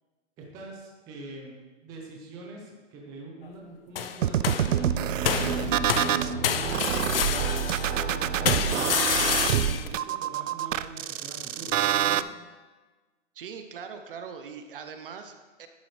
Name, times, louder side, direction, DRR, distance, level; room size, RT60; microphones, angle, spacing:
voice 1, 0.4-1.6 1.8-6.8 7.2-7.5 7.9-12.3, right 2 dB, 10° right, -2 dB, 0.7 m, -43 dB
sound 1, 4.0-4.8 5.3-7.9 8.5-9.9, left 8 dB, 50° left, 0.6 m, -28 dB
sound 2, 4.2-6.3 6.7-12.2, right 11 dB, 90° right, 0.5 m, -27 dB
sound 3, 4.5-9.8, right 5 dB, 65° right, 1.2 m, -32 dB
voice 2, 13.3-15.7, right 6 dB, 45° right, 7 dB, 0.8 m, -41 dB
11.5 x 7.6 x 3.2 m, 1.3 s
hypercardioid pair, 160°, 37 cm